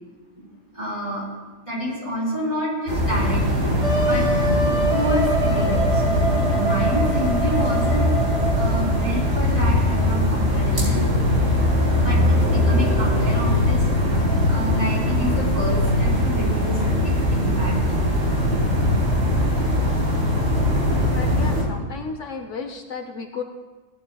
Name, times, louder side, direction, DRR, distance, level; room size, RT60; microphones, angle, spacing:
voice 1, 0.7-1.3 1.6-4.3 4.9-8.2 8.5-11.0 12.0-13.9 14.5-17.8, equal, 20° right, -8 dB, 4.6 m, -28 dB
sound 1, 2.9-21.6, left 1 dB, 50° right, 4.2 m, -21 dB
Wind instrument woodwind instrument, 3.8-9.3, right 1 dB, 5° right, 2.5 m, -25 dB
voice 2, 21.1-23.4, left 5 dB, 65° left, 5 dB, 1.0 m, -33 dB
17.5 x 12.0 x 2.3 m, 1.3 s
omnidirectional pair, 1.5 m